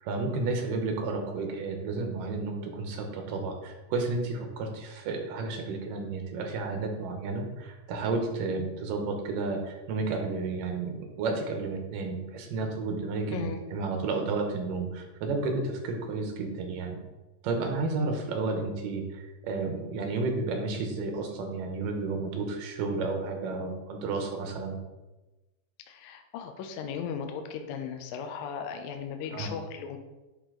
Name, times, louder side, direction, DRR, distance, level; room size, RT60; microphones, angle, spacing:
voice 1, 0.0-13.4 13.7-17.0 17.4-24.8 29.3-29.5, right 3 dB, 90° right, 3 dB, 2.6 m, -32 dB
voice 2, 13.3-13.6 25.9-30.0, left 7 dB, 80° left, 6 dB, 1.8 m, -37 dB
9.7 x 3.4 x 3.8 m, 1.1 s
omnidirectional pair, 3.8 m